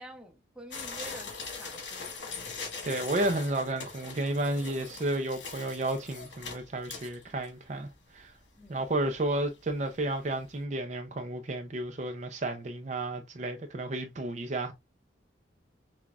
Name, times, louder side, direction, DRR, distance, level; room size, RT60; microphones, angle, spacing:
voice 1, 0.0-2.4 8.6-8.8, right 1 dB, 5° right, 0.8 m, -48 dB
sound 1, 0.7-7.5 8.0-8.1 8.3-8.4 8.9-9.2 9.6-9.7 10.0-10.1, left 4 dB, 70° left, 1.5 m, -41 dB
voice 2, 2.8-8.3 8.7-14.7, right 1 dB, 40° right, 0.5 m, -32 dB
5.8 x 2.3 x 2.4 m
head